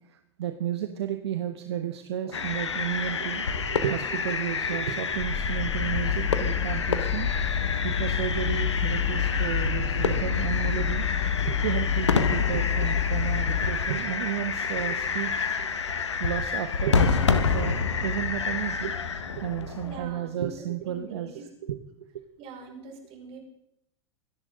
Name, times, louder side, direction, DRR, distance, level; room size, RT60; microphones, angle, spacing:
voice 1, 0.1-7.3 7.8-11.0 11.4-15.7 16.0-18.9 19.3-21.8, right 10 dB, 70° right, 8 dB, 1.4 m, -32 dB
sound 1, 2.3-20.0, left 5 dB, 80° left, 1.6 m, -28 dB
sound 2, 5.1-13.6, left 8 dB, 60° left, 1.8 m, -28 dB
voice 2, 19.8-21.5 22.4-23.4, right 4 dB, 45° right, 2 dB, 6.0 m, -44 dB
25.5 x 11.0 x 3.9 m, 0.77 s
hypercardioid pair, 95°, 15 cm